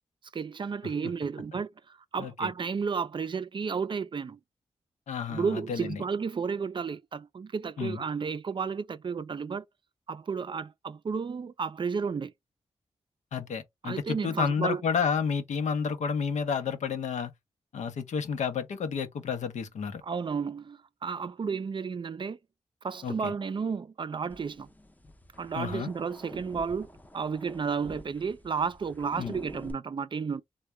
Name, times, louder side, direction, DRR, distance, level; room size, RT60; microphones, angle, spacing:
voice 1, 0.3-4.4 5.3-9.7 10.1-12.3 13.8-14.8 20.0-22.4 22.8-24.7 25.4-30.4, right 5 dB, 45° right, 0.4 m, -32 dB
voice 2, 2.2-2.5 5.1-6.0 7.8-8.0 13.3-17.3 17.7-20.0 23.0-23.3 25.6-25.9 29.2-29.4, left 6 dB, 85° left, 0.7 m, -31 dB
sound 1, 24.3-29.7, left 1 dB, 15° left, 0.6 m, -48 dB
3.5 x 2.2 x 3.0 m
cardioid pair, 60°, 12 cm